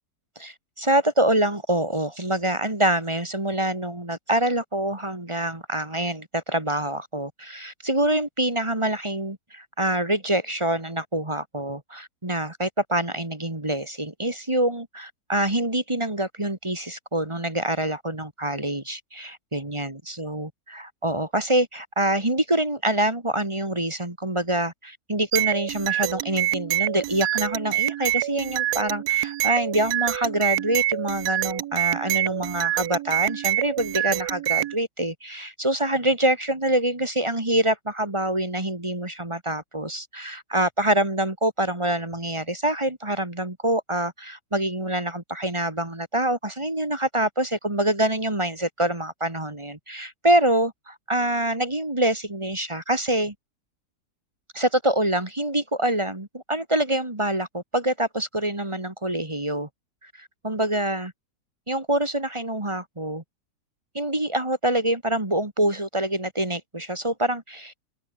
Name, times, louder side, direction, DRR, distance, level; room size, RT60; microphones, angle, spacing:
voice 1, 0.4-53.3 54.5-59.7 60.0-61.1 61.7-63.2 63.9-67.8, right 1 dB, 15° right, 2.3 m, -25 dB
sound 1, 25.3-34.8, right 14 dB, 75° right, 1.1 m, -26 dB
open air
omnidirectional pair, 1.8 m